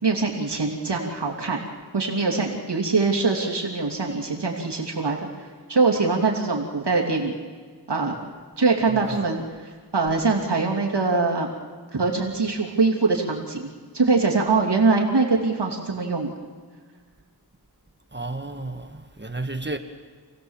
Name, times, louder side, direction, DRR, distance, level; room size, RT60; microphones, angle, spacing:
voice 1, 0.0-1.6 1.9-5.2 5.7-7.3 7.9-8.1 8.6-9.4 9.9-11.5 11.9-13.7 13.9-16.3, right 3 dB, 90° right, 2.8 m, -23 dB
voice 2, 8.9-9.3 18.1-19.8, right 2 dB, 25° right, 1.5 m, -32 dB
28.5 x 16.5 x 7.3 m
wide cardioid pair, 50°, 40 cm